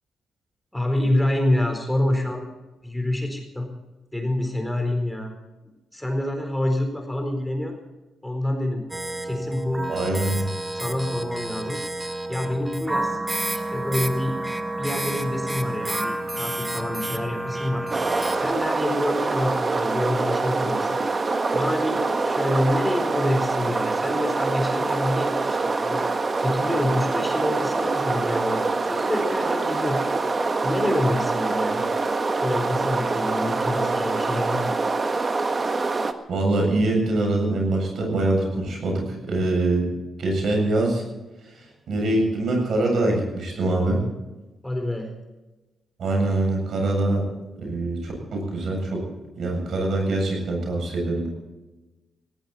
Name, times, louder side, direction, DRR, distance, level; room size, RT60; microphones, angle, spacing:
voice 1, 0.7-2.4 2.8-3.7 4.1-5.3 5.9-7.8 8.2-8.8 9.2-9.9 10.1-10.4 10.7-11.8 12.3-13.2 13.5-14.4 14.8-17.9 18.4-21.0 21.5-26.0 26.4-30.0 30.6-31.8 32.3-34.7 44.6-45.1, left 1 dB, 5° left, 3 dB, 4.3 m, -27 dB
sound 1, 8.9-18.5, right 2 dB, 20° right, 1.5 m, -30 dB
voice 2, 9.9-10.5 36.3-39.9 40.2-41.0 41.5-44.0 46.0-47.2 47.6-49.1 49.4-51.3, right 2 dB, 70° right, 2 dB, 7.7 m, -24 dB
sound 2, 17.9-36.1, right 3 dB, 35° right, 1.5 m, -25 dB
18.0 x 17.5 x 4.3 m, 1.1 s
cardioid pair, 85°, 0 cm